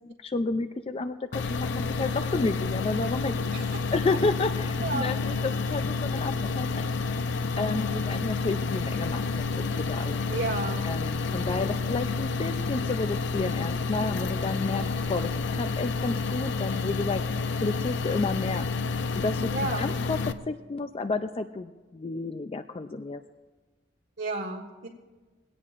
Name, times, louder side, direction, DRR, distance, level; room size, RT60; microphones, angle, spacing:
voice 1, 0.0-3.3 3.9-6.9 7.6-10.3 10.8-17.2 17.6-18.7 19.2-19.5 19.8-23.2, left 3 dB, 30° left, 9 dB, 0.4 m, -31 dB
sound 1, 1.3-20.3, left 4 dB, 75° left, 0.6 m, -29 dB
voice 2, 4.8-5.1 10.3-10.8 19.5-19.9 24.2-24.9, right 3 dB, 85° right, -1 dB, 1.5 m, -32 dB
21.5 x 17.0 x 2.5 m, 1.3 s
head